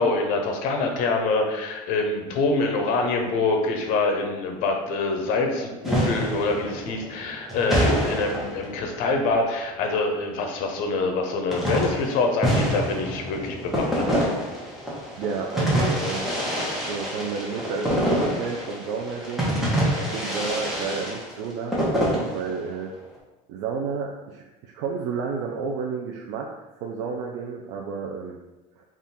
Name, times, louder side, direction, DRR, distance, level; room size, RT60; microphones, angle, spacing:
voice 1, 0.0-14.1, left 3 dB, 70° left, 3 dB, 0.8 m, -25 dB
sound 1, 5.8-9.3 11.5-22.8, equal, ahead, 1.0 m, -26 dB
voice 2, 15.2-16.3 16.9-19.6 19.9-22.9 23.5-28.4 28.8-28.9, right 5 dB, 85° right, -1 dB, 0.5 m, -31 dB
3.6 x 2.4 x 4.1 m, 1.1 s
cardioid pair, 140°, 15 cm